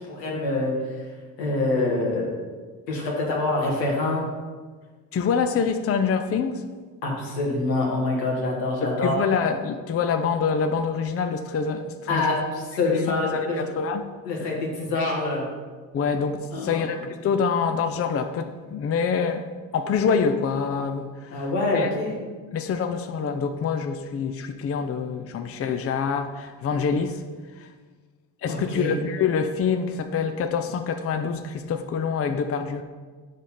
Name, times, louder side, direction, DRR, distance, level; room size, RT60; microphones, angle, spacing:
voice 1, 0.1-0.7 1.4-2.4 2.9-4.2 7.0-9.1 12.1-13.6 14.2-15.5 16.5-16.8 21.3-22.1 28.5-29.0, left 2 dB, 85° left, -2 dB, 1.5 m, -25 dB
voice 2, 5.1-6.6 8.8-12.4 12.9-13.0 13.3-14.1 15.9-19.4 19.7-21.9 22.5-27.2 27.6-27.7 28.4-32.8, left 6 dB, 30° left, 7 dB, 0.6 m, -26 dB
5.4 x 5.0 x 5.5 m, 1.5 s
hypercardioid pair, 55°, 48 cm